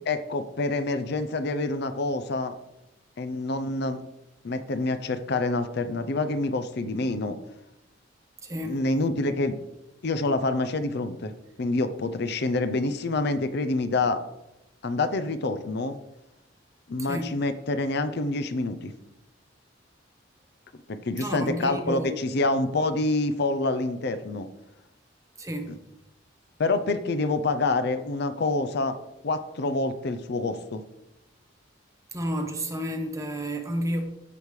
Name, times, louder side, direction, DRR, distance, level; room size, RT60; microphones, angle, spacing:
voice 1, 0.1-2.6 3.2-4.0 4.4-7.4 8.6-9.6 10.0-11.3 11.6-14.2 14.8-16.0 16.9-18.9 20.9-24.5 26.6-29.0 29.2-30.8, left 2 dB, 60° left, 0.6 m, -27 dB
voice 2, 8.4-8.8 17.0-17.3 21.2-22.2 25.4-25.8 32.1-34.0, equal, 15° right, 1.0 m, -31 dB
14.5 x 5.2 x 3.2 m
head